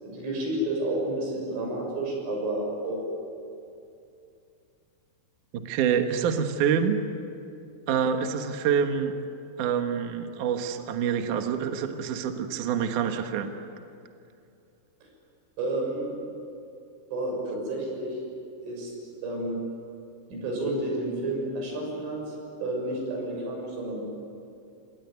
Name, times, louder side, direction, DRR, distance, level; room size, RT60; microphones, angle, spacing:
voice 1, 0.0-3.0 15.6-16.2 17.1-18.2 18.6-19.6 20.3-24.0, right 1 dB, 85° right, 0 dB, 9.2 m, -31 dB
voice 2, 5.5-7.0 7.9-9.1 9.6-13.5, right 7 dB, 65° right, 6 dB, 2.2 m, -26 dB
27.5 x 20.0 x 9.6 m, 2.6 s
omnidirectional pair, 5.4 m